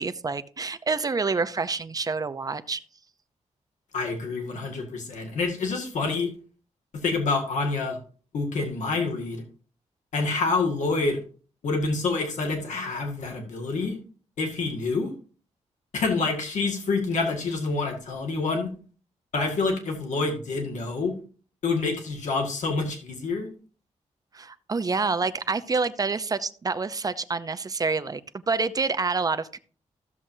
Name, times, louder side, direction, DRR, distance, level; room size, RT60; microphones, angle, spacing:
voice 1, 0.0-2.8 24.3-29.6, right 4 dB, 30° right, 12 dB, 0.6 m, -27 dB
voice 2, 3.9-6.3 6.9-8.0 8.3-9.4 10.1-11.2 11.6-14.0 14.4-15.1 15.9-18.7 19.3-21.1 21.6-23.5, left 3 dB, 85° left, 1 dB, 2.0 m, -27 dB
14.5 x 7.3 x 2.7 m, 0.41 s
wide cardioid pair, 125°, 12 cm